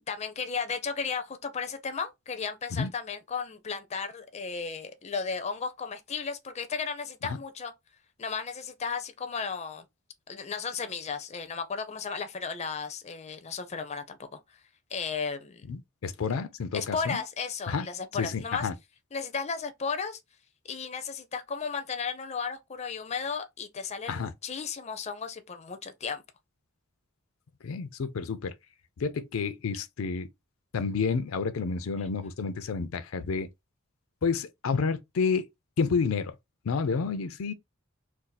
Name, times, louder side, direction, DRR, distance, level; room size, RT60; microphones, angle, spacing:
voice 1, 0.1-7.7 8.2-9.8 10.3-14.4 14.9-15.7 16.7-18.7 19.1-20.2 20.6-26.2 32.0-32.1, left 5 dB, 35° left, 0.5 m, -34 dB
voice 2, 15.7-17.2 17.7-17.9 18.2-18.7 24.1-24.3 27.6-28.5 29.0-30.3 30.7-33.5 34.2-35.5 35.8-36.3 36.6-37.5, left 5 dB, 85° left, 0.4 m, -30 dB
2.6 x 2.4 x 3.9 m
head